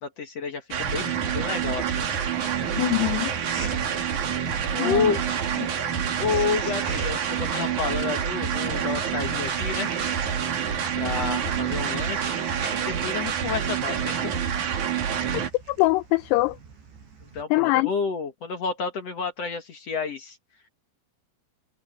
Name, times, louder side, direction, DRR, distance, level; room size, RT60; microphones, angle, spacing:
voice 1, 0.0-2.1 4.7-5.2 6.2-10.1 11.0-12.4 12.7-14.3 17.2-20.4, left 5 dB, 60° left, 1.8 m, -30 dB
sound 1, 0.7-15.5, right 8 dB, 50° right, 3.0 m, -27 dB
sound 2, 1.6-17.4, right 4 dB, 70° right, 7.8 m, -43 dB
voice 2, 2.8-3.3 4.8-5.1 15.7-16.6 17.5-17.9, left 20 dB, 85° left, 2.3 m, -22 dB
omnidirectional pair, 5.3 m